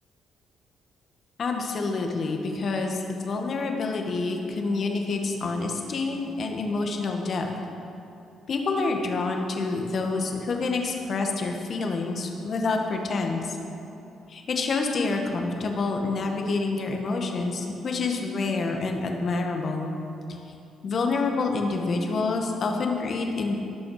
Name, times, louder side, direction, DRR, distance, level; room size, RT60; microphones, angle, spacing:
voice 1, 1.4-7.5 8.5-13.6 14.3-19.9 20.8-23.6, left 3 dB, 50° left, 2 dB, 1.5 m, -27 dB
17.5 x 6.2 x 5.0 m, 2.9 s
cardioid pair, 90°, 0 cm